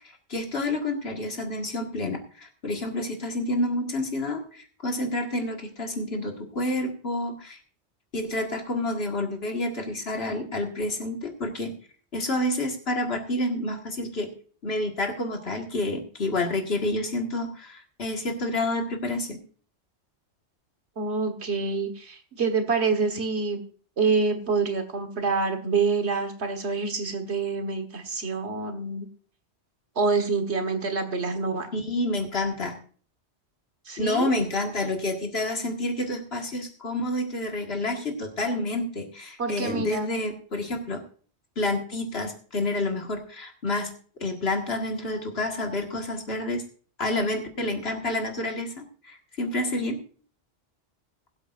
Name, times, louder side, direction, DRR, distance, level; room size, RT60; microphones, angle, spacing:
voice 1, 0.3-7.6 8.1-11.8 12.1-14.3 14.6-19.4 31.7-32.8 34.0-41.0 41.6-43.9 44.2-46.6 47.0-50.0, left 2 dB, 65° left, 3 dB, 2.1 m, -29 dB
voice 2, 21.0-23.6 24.0-29.1 30.0-31.7 33.9-34.3 39.4-40.1, right 4 dB, 75° right, 5 dB, 1.7 m, -26 dB
21.0 x 8.1 x 2.5 m, 0.43 s
omnidirectional pair, 1.1 m